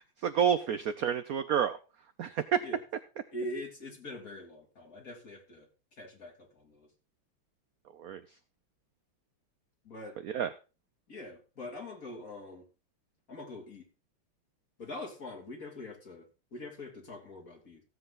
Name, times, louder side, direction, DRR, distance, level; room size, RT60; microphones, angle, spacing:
voice 1, 0.2-1.8 2.2-2.6 8.0-8.2 10.3-10.5, right 8 dB, 75° right, 0.8 m, -29 dB
voice 2, 3.3-5.7 6.0-6.9 9.8-10.2 11.1-12.7 13.3-13.9 14.8-17.8, left 1 dB, 40° left, 3.2 m, -43 dB
16.0 x 7.9 x 3.8 m
omnidirectional pair, 2.3 m